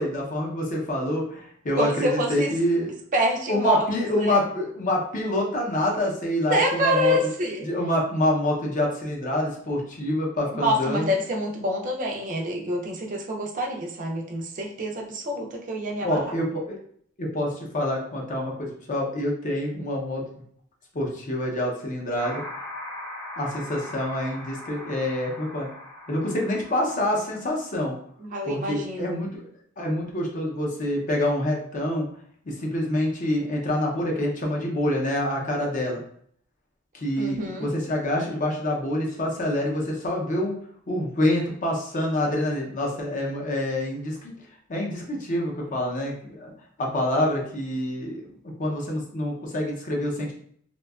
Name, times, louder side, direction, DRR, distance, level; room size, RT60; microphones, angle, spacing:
voice 1, 0.0-2.9 3.5-7.1 7.7-11.1 16.0-16.8 17.2-20.2 20.9-22.4 23.4-25.7 26.1-28.0 28.5-29.4 29.8-32.1 32.5-36.0 36.9-40.6 40.9-44.3 44.7-46.5 46.8-48.2 48.6-50.3, left 1 dB, 40° left, -1 dB, 0.6 m, -26 dB
voice 2, 1.7-2.5 3.1-3.9 4.2-4.4 6.5-7.7 10.5-16.2 28.2-29.2 37.2-37.7, equal, 40° right, 1 dB, 0.4 m, -26 dB
sound 1, 22.2-27.5, left 1 dB, 25° left, 0.9 m, -40 dB
2.6 x 2.2 x 2.3 m, 0.63 s
head